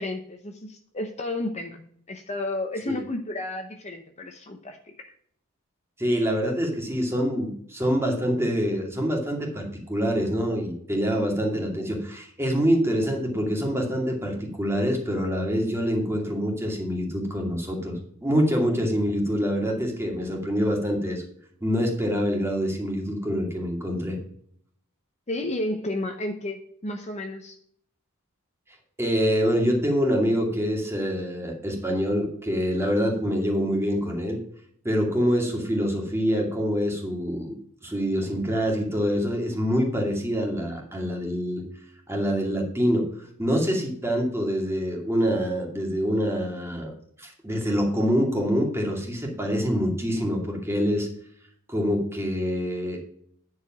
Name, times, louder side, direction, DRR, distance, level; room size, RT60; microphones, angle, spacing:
voice 1, 0.0-5.1 25.3-27.6, left 2 dB, 30° left, 5 dB, 0.8 m, -32 dB
voice 2, 6.0-21.2 21.6-24.2 29.0-34.4 34.8-41.6 42.1-43.1 43.4-46.9 47.2-51.1 51.7-53.0, equal, 10° right, 0 dB, 2.3 m, -25 dB
10.0 x 4.9 x 6.0 m, 0.63 s
head